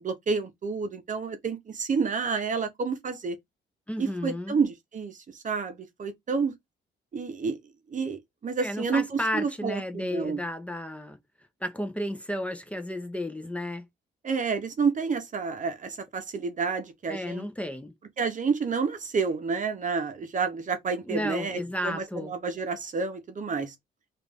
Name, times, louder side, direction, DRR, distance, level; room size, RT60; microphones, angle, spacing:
voice 1, 0.0-3.4 4.0-6.5 7.1-7.6 7.9-10.4 14.2-17.4 18.2-23.7, right 5 dB, 40° right, 0.9 m, -29 dB
voice 2, 3.9-4.6 8.6-11.2 11.6-13.8 17.1-17.9 21.1-22.3, left 1 dB, 5° left, 0.7 m, -33 dB
3.1 x 2.6 x 3.5 m
cardioid pair, 90°, 20 cm